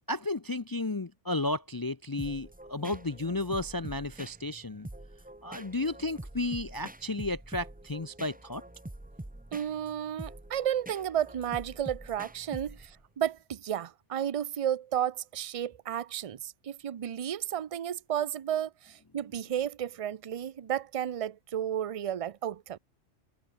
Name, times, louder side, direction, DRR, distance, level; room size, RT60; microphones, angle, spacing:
voice 1, 0.1-4.9 5.4-8.6, left 2 dB, 25° left, 0.6 m, -33 dB
sound 1, 2.2-13.1, right 1 dB, 10° right, 0.9 m, -46 dB
voice 2, 9.5-22.8, right 10 dB, 45° right, 0.5 m, -33 dB
omnidirectional pair, 1.2 m